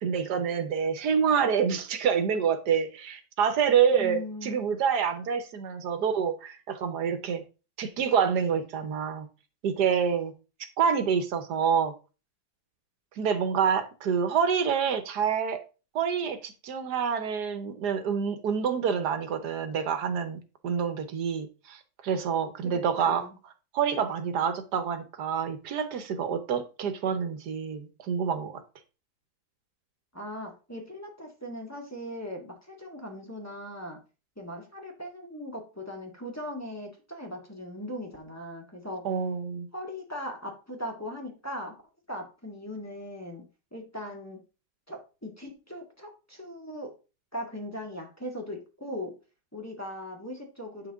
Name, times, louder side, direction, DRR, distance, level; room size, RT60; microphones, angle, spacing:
voice 1, 0.0-7.4 7.8-9.3 9.6-10.3 10.8-11.9 13.2-15.6 15.9-23.3 23.7-28.6 39.0-39.7, right 7 dB, 90° right, 1.6 m, -27 dB
voice 2, 4.0-4.6 22.6-22.8 23.1-23.4 30.1-34.0 34.4-39.0 39.7-41.8 42.1-43.4 43.7-44.4 44.9-46.9 47.3-49.2 49.5-50.9, left 1 dB, 10° left, 1.9 m, -39 dB
8.9 x 6.0 x 3.6 m
omnidirectional pair, 1.7 m